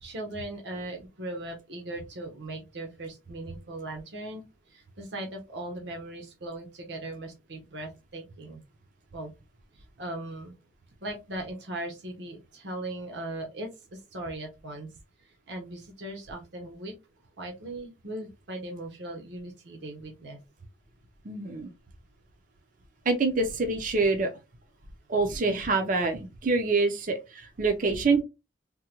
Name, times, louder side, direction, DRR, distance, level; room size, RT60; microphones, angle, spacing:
voice 1, 0.0-4.4 4.7-8.6 9.1-9.3 9.7-10.5 11.0-14.9 15.5-16.9 17.4-20.4, right 1 dB, 75° right, 0.8 m, -39 dB
voice 2, 21.2-21.7 23.1-24.3 25.1-28.2, right 3 dB, 45° right, 0.5 m, -26 dB
3.6 x 2.1 x 2.9 m
head